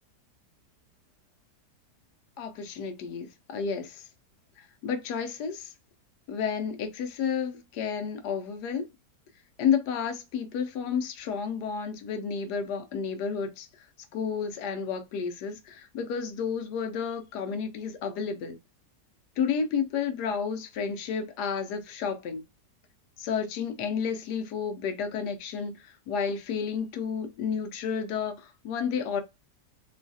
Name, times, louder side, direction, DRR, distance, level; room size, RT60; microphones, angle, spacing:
voice 1, 2.4-4.0 4.8-5.7 6.3-8.9 9.6-13.7 14.1-18.6 19.4-22.4 23.2-25.7 26.1-29.2, left 6 dB, 75° left, 1.1 m, -31 dB
3.1 x 2.3 x 2.5 m
omnidirectional pair, 1.8 m